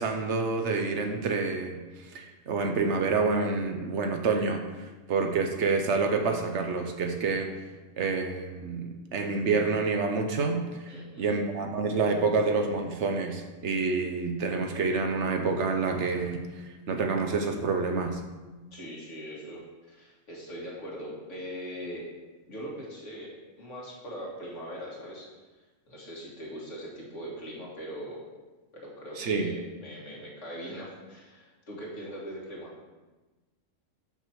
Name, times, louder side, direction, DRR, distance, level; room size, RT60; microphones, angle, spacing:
voice 1, 0.0-7.5 8.0-18.2 29.2-29.5, right 4 dB, 65° right, 5 dB, 1.0 m, -28 dB
voice 2, 10.9-11.4 18.7-22.1 22.5-25.3 25.9-28.2 28.7-32.7, equal, 70° left, -4 dB, 2.1 m, -41 dB
5.9 x 5.7 x 4.6 m, 1.2 s
omnidirectional pair, 1.3 m